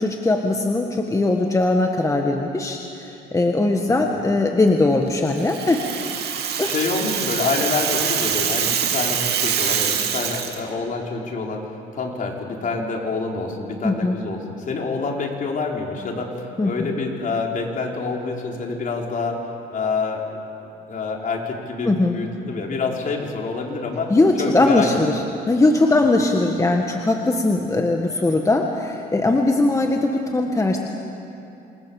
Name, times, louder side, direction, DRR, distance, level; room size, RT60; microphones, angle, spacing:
voice 1, 0.0-5.9 6.6-6.7 13.8-14.2 16.6-16.9 21.8-22.2 24.1-30.8, left 2 dB, 15° left, 2 dB, 1.7 m, -20 dB
Rattle (instrument), 5.4-10.6, right 8 dB, 70° right, 2.6 m, -24 dB
voice 2, 6.7-11.6 11.9-19.4 19.7-20.4 20.9-24.1 24.4-24.9 26.1-26.2, left 4 dB, 50° left, 0 dB, 4.2 m, -27 dB
28.0 x 21.0 x 7.2 m, 2.7 s
cardioid pair, 95°, 18 cm